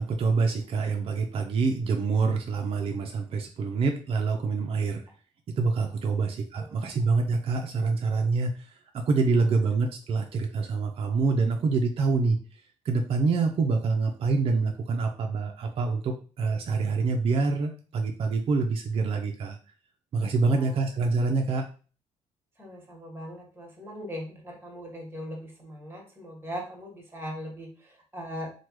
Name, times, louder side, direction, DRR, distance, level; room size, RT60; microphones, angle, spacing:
voice 1, 0.0-5.0 5.5-19.6 20.1-21.6, right 4 dB, 50° right, 3 dB, 0.5 m, -26 dB
voice 2, 20.4-20.8 22.6-28.5, equal, 15° right, -1 dB, 1.3 m, -40 dB
3.1 x 2.2 x 3.0 m, 0.38 s
cardioid pair, 85°, 13 cm